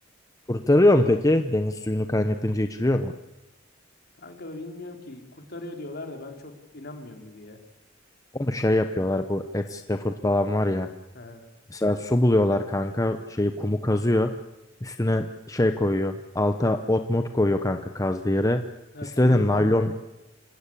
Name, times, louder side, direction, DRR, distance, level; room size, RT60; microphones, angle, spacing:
voice 1, 0.5-3.1 8.3-10.9 11.7-14.3 14.8-18.6 19.0-19.9, left 1 dB, 15° left, 7 dB, 0.9 m, -23 dB
voice 2, 4.2-7.6 11.2-11.4 18.9-19.8, left 2 dB, 55° left, 4 dB, 3.5 m, -39 dB
27.5 x 17.5 x 8.5 m, 0.99 s
head